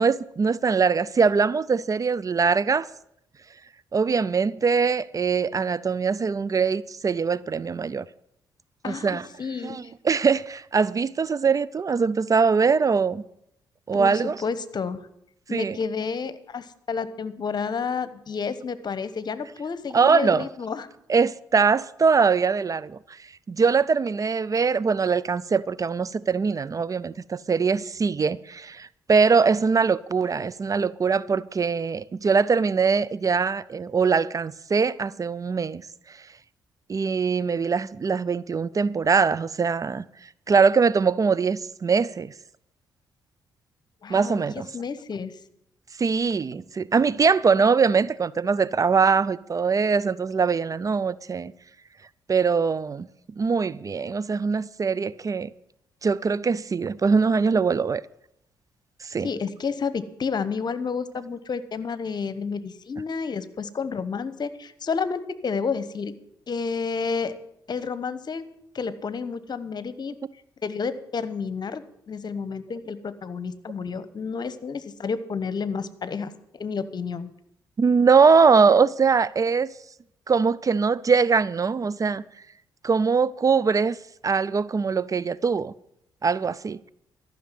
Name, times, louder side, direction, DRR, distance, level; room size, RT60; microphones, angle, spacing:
voice 1, 0.0-2.9 3.9-8.0 8.8-9.2 9.6-13.2 13.9-14.4 15.5-15.8 19.9-20.4 21.1-23.0 23.5-35.8 36.9-40.1 40.5-42.3 44.1-44.7 46.0-51.5 52.3-53.1 53.4-55.5 56.0-58.0 59.0-59.3 77.8-79.7 80.3-82.2 82.8-84.0 84.2-85.7 86.2-86.8, right 5 dB, 35° right, 0.5 m, -22 dB
voice 2, 8.8-9.9 13.9-15.1 15.5-20.9 44.0-45.3 59.2-66.1 66.5-67.3 67.7-68.4 68.7-70.1 70.6-77.3, left 5 dB, 50° left, 1.1 m, -30 dB
13.5 x 6.5 x 9.1 m
hypercardioid pair, 45°, 9 cm